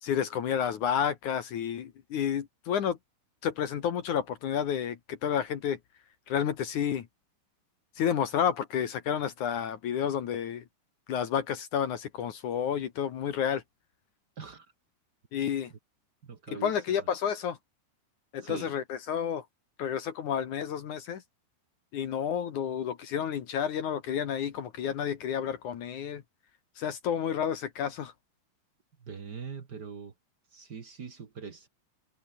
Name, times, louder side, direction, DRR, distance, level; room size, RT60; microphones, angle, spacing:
voice 1, 0.0-3.0 3.4-5.8 6.3-7.1 8.0-10.6 11.1-13.6 15.3-15.7 16.5-17.6 18.3-19.5 19.8-21.2 21.9-26.2 26.8-28.1, left 8 dB, 60° left, 2.7 m, -30 dB
voice 2, 16.2-16.7 18.4-18.7 29.0-30.1 30.5-31.7, right 6 dB, 45° right, 1.3 m, -42 dB
omnidirectional pair, 4.5 m